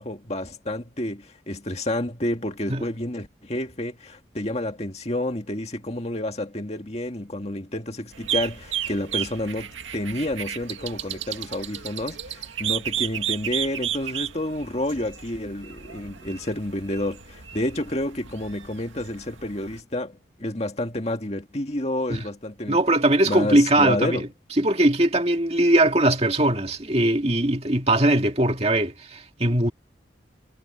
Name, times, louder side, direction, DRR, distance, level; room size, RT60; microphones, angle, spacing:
voice 1, 0.0-22.8 23.3-24.3, left 1 dB, 35° left, 2.1 m, -29 dB
sound 1, 8.1-19.8, right 10 dB, 85° right, 2.1 m, -33 dB
voice 2, 22.7-24.3 24.6-29.7, right 1 dB, 35° right, 2.1 m, -20 dB
head